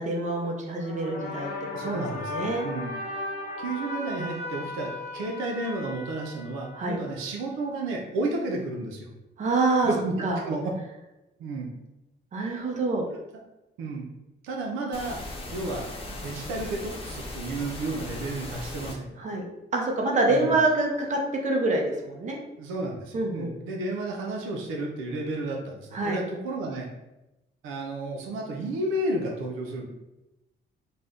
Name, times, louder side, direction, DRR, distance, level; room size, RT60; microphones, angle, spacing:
voice 1, 0.0-1.5 1.8-2.6 6.7-7.0 9.4-9.9 10.2-10.4 12.3-13.0 19.2-19.4 19.7-22.4 23.1-23.5 25.9-26.2, right 2 dB, 35° right, 1 dB, 0.7 m, -26 dB
sound 1, 0.8-7.1, left 2 dB, 55° left, 0.8 m, -36 dB
voice 2, 1.7-2.9 3.6-9.1 9.8-10.1 10.4-10.7 11.4-11.7 13.8-14.1 14.4-15.2 15.5-19.1 20.3-20.6 22.6-26.9 27.6-29.9, right 2 dB, 90° right, 0 dB, 0.5 m, -32 dB
sound 2, 14.9-18.9, left 1 dB, 30° left, 0.6 m, -38 dB
2.6 x 2.1 x 3.4 m, 0.96 s
cardioid pair, 90°, 20 cm